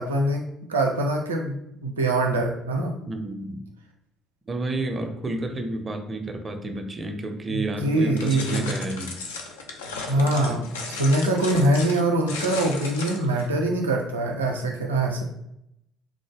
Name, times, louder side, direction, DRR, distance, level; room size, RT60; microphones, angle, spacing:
voice 1, 0.0-1.5 1.8-3.0 7.5-8.7 10.1-10.6 11.0-15.2, right 1 dB, 85° right, 1 dB, 0.4 m, -23 dB
voice 2, 3.0-3.6 4.5-9.1 10.2-10.7, right 2 dB, 30° right, 6 dB, 0.5 m, -31 dB
sound 1, 8.2-13.5, left 4 dB, 80° left, 0.4 m, -35 dB
3.5 x 2.0 x 3.3 m, 0.80 s
hypercardioid pair, 55°, 0 cm